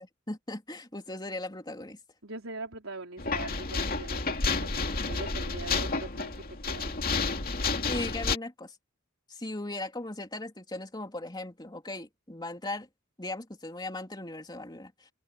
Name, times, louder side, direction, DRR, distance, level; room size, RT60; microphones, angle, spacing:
voice 1, 0.0-2.0 7.9-8.8 9.3-12.9 13.2-15.1, left 2 dB, 20° left, 3.4 m, -38 dB
voice 2, 2.2-6.9, right 2 dB, 70° right, 4.7 m, -42 dB
sound 1, 3.2-8.4, left 4 dB, 45° left, 2.6 m, -30 dB
open air
head